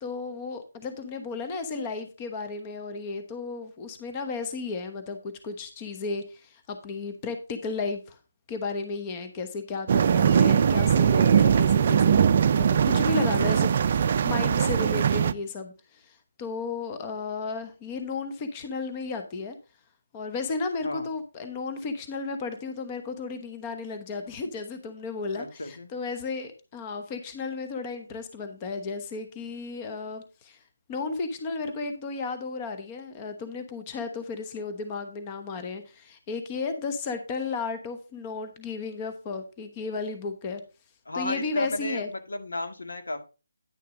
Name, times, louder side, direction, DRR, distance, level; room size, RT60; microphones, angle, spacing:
voice 1, 0.0-8.2 8.5-12.2 12.6-19.6 20.1-30.6 30.9-40.6 41.1-42.1, left 4 dB, 20° left, 9 dB, 1.0 m, -34 dB
sound 1, 9.9-15.3, right 7 dB, 40° right, 0.5 m, -21 dB
voice 2, 25.3-25.9 41.1-43.2, left 2 dB, 80° left, 6 dB, 2.0 m, -33 dB
10.0 x 6.6 x 3.8 m, 0.32 s
figure-of-eight pair, 160°, 0 cm